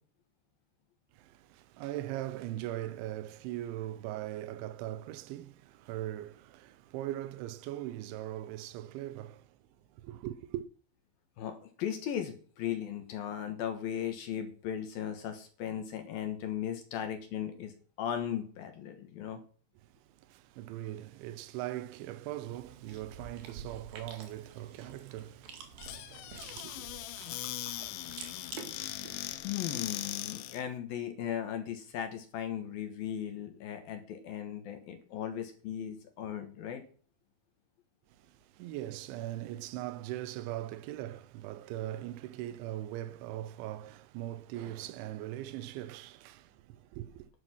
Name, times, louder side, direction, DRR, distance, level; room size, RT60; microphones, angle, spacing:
voice 1, 1.1-9.6 9.9-10.7 19.8-26.9 38.1-47.3, right 14 dB, 85° right, 3.1 m, -40 dB
voice 2, 11.4-19.4 29.4-36.8, left 9 dB, 65° left, 2.7 m, -37 dB
Chewing mastication, 22.5-29.4, right 6 dB, 60° right, 3.4 m, -49 dB
Squeak / Cupboard open or close, 25.8-30.7, left 15 dB, 85° left, 3.2 m, -40 dB
11.5 x 7.9 x 6.1 m
omnidirectional pair, 5.3 m